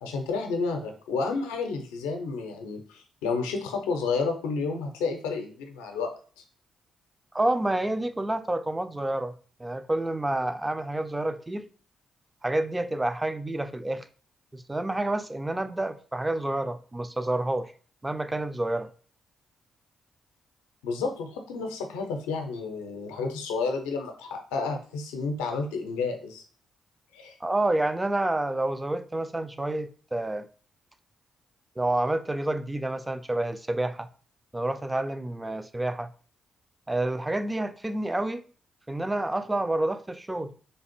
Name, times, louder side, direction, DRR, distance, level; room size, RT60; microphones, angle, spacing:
voice 1, 0.0-6.1 6.4-6.5 20.8-26.4 27.1-27.4, left 4 dB, 85° left, 0.5 m, -31 dB
voice 2, 7.3-9.3 9.6-11.7 12.4-14.1 14.5-17.7 18.0-18.9 27.4-30.5 31.8-34.1 34.5-36.1 36.9-38.4 38.9-40.5, right 1 dB, 20° right, 0.4 m, -29 dB
3.3 x 2.4 x 4.2 m
hypercardioid pair, 45°, 0 cm